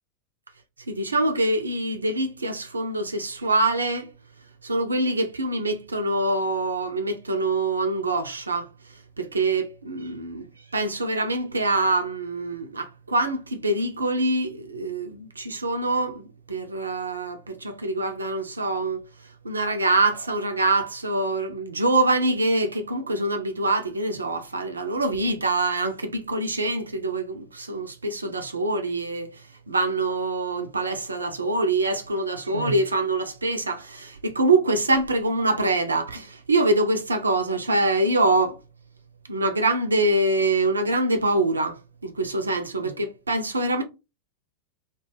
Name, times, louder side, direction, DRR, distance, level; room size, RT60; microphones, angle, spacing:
voice 1, 0.9-4.1 4.6-8.7 9.2-10.5 10.7-19.0 19.4-29.4 29.7-38.6 39.3-43.8, right 2 dB, 75° right, 0.5 m, -25 dB
2.2 x 2.1 x 3.2 m
figure-of-eight pair, 90°, 0 cm